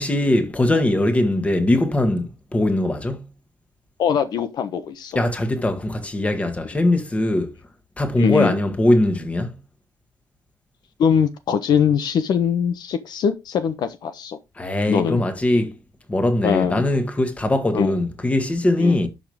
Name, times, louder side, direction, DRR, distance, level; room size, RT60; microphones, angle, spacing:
voice 1, 0.0-3.3 5.2-7.5 8.0-9.6 14.6-15.8 16.1-19.1, left 1 dB, 20° left, 1.8 m, -21 dB
voice 2, 4.0-5.2 8.2-8.5 11.0-14.4 14.9-15.2 16.4-16.8 17.7-17.9 18.8-19.0, left 7 dB, 70° left, 1.1 m, -22 dB
12.0 x 6.2 x 3.6 m
cardioid pair, 135°, 7 cm